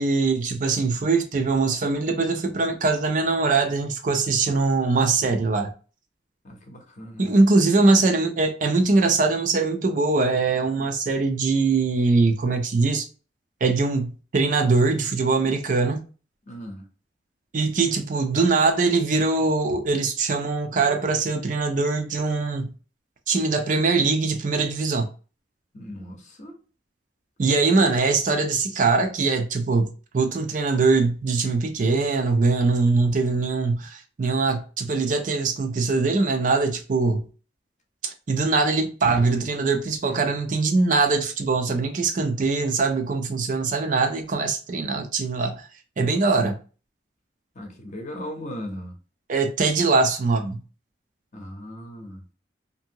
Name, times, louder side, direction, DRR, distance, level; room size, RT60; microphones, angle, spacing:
voice 1, 0.0-5.7 7.2-13.1 13.6-16.0 17.5-22.7 23.3-25.1 27.4-37.3 38.0-45.7 46.0-46.6 49.3-50.6, right 3 dB, 45° right, 0.4 m, -22 dB
voice 2, 6.4-7.3 16.5-16.9 25.7-26.6 47.5-49.0 51.3-52.2, equal, 40° left, 0.7 m, -37 dB
2.7 x 2.6 x 2.7 m
head